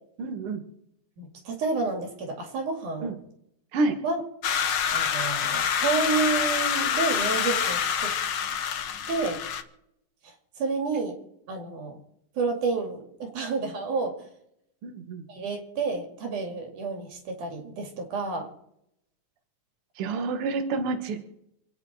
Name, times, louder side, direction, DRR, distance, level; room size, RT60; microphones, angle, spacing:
voice 1, 0.2-0.6 3.0-3.1 3.7-4.0 14.8-15.2 20.0-21.2, right 3 dB, 50° right, 5 dB, 2.1 m, -28 dB
voice 2, 1.2-3.2 4.0-4.2 4.9-8.1 9.1-9.4 10.2-11.2 11.5-11.9 12.4-14.2 15.3-18.5, right 4 dB, 85° right, 3 dB, 3.9 m, -30 dB
sound 1, 4.4-9.6, left 8 dB, 85° left, 1.0 m, -26 dB
27.5 x 9.3 x 4.3 m, 0.77 s
omnidirectional pair, 3.5 m